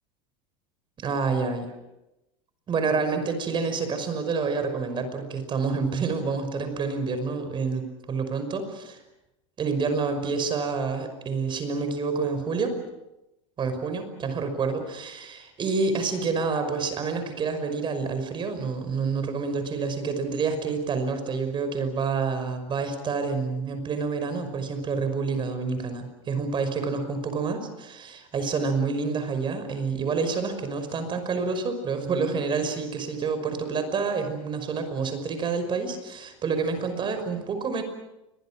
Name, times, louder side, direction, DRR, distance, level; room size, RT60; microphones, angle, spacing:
voice 1, 1.0-1.7 2.7-9.0 9.6-12.8 13.6-37.8, right 4 dB, 30° right, 8 dB, 5.7 m, -28 dB
29.0 x 23.5 x 6.3 m, 0.93 s
supercardioid pair, 125°, 16 cm